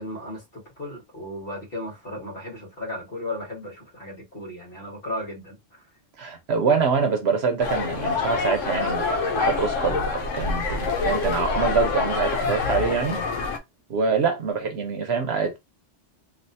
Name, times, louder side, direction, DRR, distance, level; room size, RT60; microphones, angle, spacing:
voice 1, 0.0-5.6, left 1 dB, 50° left, 1.7 m, -35 dB
voice 2, 6.2-13.2 13.9-15.6, right 5 dB, 65° right, 1.0 m, -25 dB
sound 1, 7.6-13.6, left 4 dB, 80° left, 1.1 m, -26 dB
3.4 x 2.6 x 2.7 m
omnidirectional pair, 1.2 m